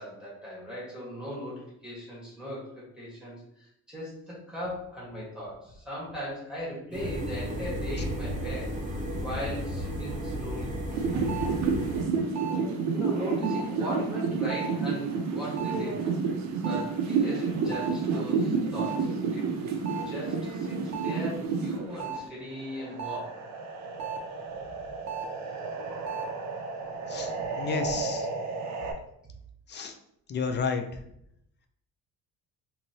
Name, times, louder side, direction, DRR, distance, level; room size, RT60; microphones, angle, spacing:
voice 1, 0.0-8.8 9.2-10.7 11.8-12.3 12.9-16.0 16.6-19.5 19.9-23.3, equal, 5° right, -7 dB, 1.2 m, -38 dB
sound 1, 6.9-12.0, equal, 25° right, 0.8 m, -33 dB
sound 2, 10.9-22.2 22.6-28.9, right 5 dB, 65° right, 0.5 m, -30 dB
voice 2, 27.6-28.3 29.7-30.0 30.3-30.8, left 5 dB, 35° left, 6 dB, 0.4 m, -31 dB
2.9 x 2.7 x 2.7 m, 0.77 s
cardioid pair, 110°, 31 cm